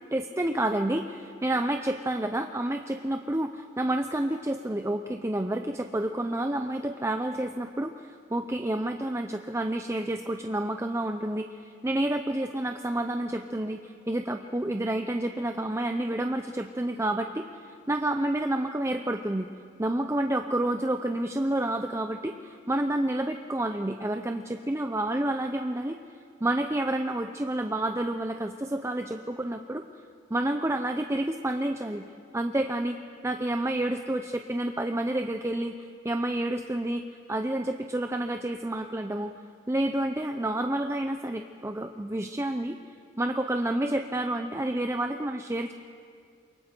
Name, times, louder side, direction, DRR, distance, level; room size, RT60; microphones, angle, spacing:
voice 1, 0.1-19.5 19.8-25.9 26.4-29.8 30.3-32.0 32.3-33.0 33.2-35.7 36.0-37.0 37.3-39.3 39.7-42.7 43.2-45.7, right 1 dB, 15° right, 6 dB, 0.6 m, -29 dB
28.5 x 23.0 x 4.5 m, 2.3 s
head